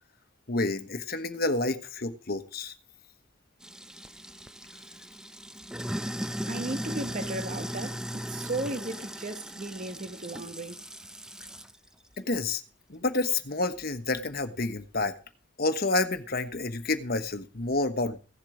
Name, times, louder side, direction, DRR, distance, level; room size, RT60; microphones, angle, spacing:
voice 1, 0.5-2.7 12.2-12.6 12.9-15.1 15.6-18.2, left 2 dB, 50° left, 1.3 m, -29 dB
Sink (filling or washing), 3.6-11.8, equal, 5° right, 0.6 m, -37 dB
voice 2, 6.5-10.8, right 2 dB, 40° right, 1.1 m, -35 dB
16.0 x 7.5 x 5.0 m
head